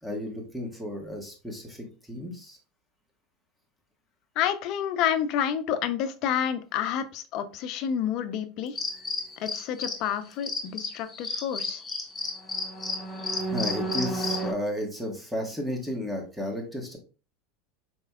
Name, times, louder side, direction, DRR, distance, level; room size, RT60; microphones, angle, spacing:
voice 1, 0.0-2.6 13.5-17.0, equal, 5° right, 1 dB, 1.4 m, -33 dB
voice 2, 4.4-8.8 9.4-11.8, left 9 dB, 55° left, 11 dB, 0.5 m, -29 dB
sound 1, 8.8-10.1 10.4-14.5, left 2 dB, 15° left, 1.1 m, -31 dB
4.3 x 3.3 x 2.3 m, 0.33 s
hypercardioid pair, 95°, 0 cm